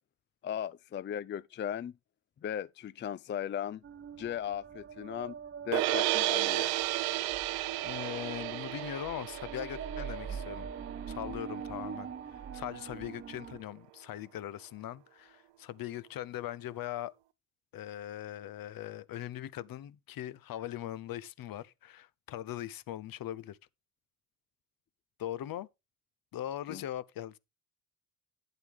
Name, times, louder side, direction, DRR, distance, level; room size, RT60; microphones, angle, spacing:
voice 1, 0.4-1.9 2.4-3.8 4.2-5.4 5.7-6.7 26.7-26.8, left 9 dB, 30° left, 0.4 m, -37 dB
sound 1, 3.8-13.6, right 7 dB, 30° right, 0.8 m, -43 dB
sound 2, 5.7-11.9, right 16 dB, 90° right, 0.7 m, -33 dB
voice 2, 7.8-10.7 11.1-17.1 17.7-23.6 25.2-25.7 26.3-27.4, left 12 dB, 60° left, 0.8 m, -40 dB
9.6 x 8.0 x 3.5 m
supercardioid pair, 65°, 40 cm